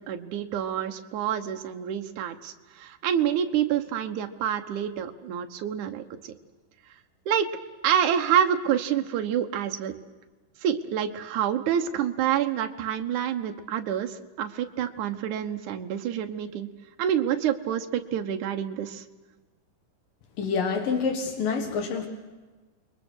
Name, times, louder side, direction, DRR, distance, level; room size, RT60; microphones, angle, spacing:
voice 1, 0.0-6.3 7.3-7.5 7.8-9.9 10.6-16.7 17.0-19.0, right 9 dB, 65° right, 6 dB, 2.5 m, -27 dB
voice 2, 20.4-22.1, left 5 dB, 75° left, 5 dB, 3.4 m, -27 dB
28.5 x 22.5 x 6.3 m, 1.3 s
omnidirectional pair, 3.9 m